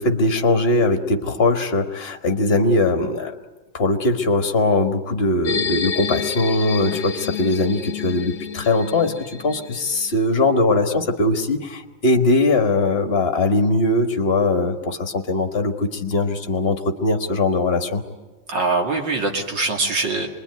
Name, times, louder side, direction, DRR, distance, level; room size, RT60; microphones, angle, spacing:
voice 1, 0.0-3.3 3.7-18.0, left 2 dB, 30° left, 5 dB, 1.6 m, -20 dB
sound 1, 5.4-10.2, left 7 dB, 55° left, 1.4 m, -29 dB
voice 2, 18.5-20.3, right 3 dB, 60° right, 2 dB, 3.1 m, -23 dB
25.5 x 22.0 x 9.5 m, 1.2 s
omnidirectional pair, 2.3 m